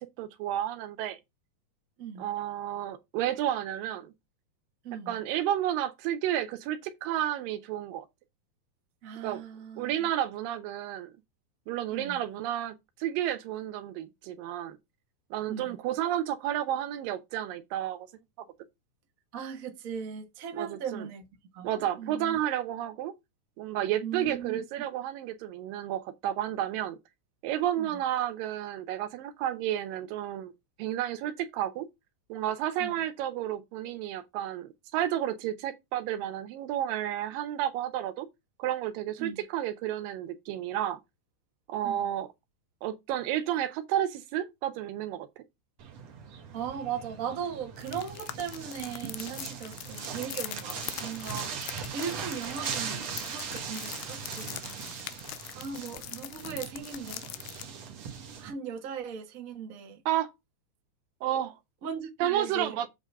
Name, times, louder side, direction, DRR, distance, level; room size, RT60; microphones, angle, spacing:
voice 1, 0.2-1.2 2.2-4.1 5.1-8.1 9.2-9.4 9.8-11.1 11.7-14.8 15.3-18.1 20.5-21.1 21.6-23.1 23.6-27.0 27.4-30.5 30.8-31.9 32.3-38.3 38.6-41.0 41.7-42.3 42.8-45.5 60.1-60.3 61.2-61.6 62.2-62.9, right 11 dB, 85° right, 2.6 m, -31 dB
voice 2, 4.8-5.2 9.0-10.1 11.9-12.2 15.5-15.8 19.3-21.3 21.5-21.7 22.0-22.4 24.0-24.6 27.8-28.0 32.8-33.0 39.2-39.4 41.8-42.0 46.5-54.7 55.5-57.3 57.7-57.8 58.4-60.0 61.8-62.9, right 7 dB, 40° right, 1.3 m, -38 dB
sound 1, 45.8-58.5, right 6 dB, 55° right, 2.2 m, -40 dB
sound 2, 47.8-57.6, left 14 dB, 85° left, 2.4 m, -42 dB
8.0 x 3.8 x 5.4 m
omnidirectional pair, 3.9 m